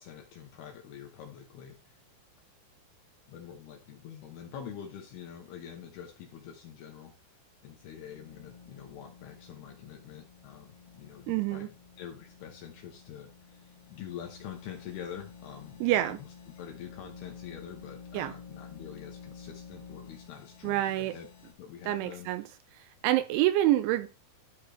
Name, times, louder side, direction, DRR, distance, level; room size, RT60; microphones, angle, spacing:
voice 1, 0.0-2.0 3.3-7.1 7.6-16.2 16.6-21.3 21.6-22.3, left 9 dB, 75° left, 2.5 m, -46 dB
sound 1, 7.7-21.5, left 6 dB, 55° left, 4.0 m, -51 dB
voice 2, 11.3-11.7 15.8-16.2 18.1-18.3 20.6-21.1 21.9-22.4 22.7-24.2, right 14 dB, 80° right, 2.8 m, -27 dB
13.0 x 4.7 x 3.4 m
omnidirectional pair, 5.7 m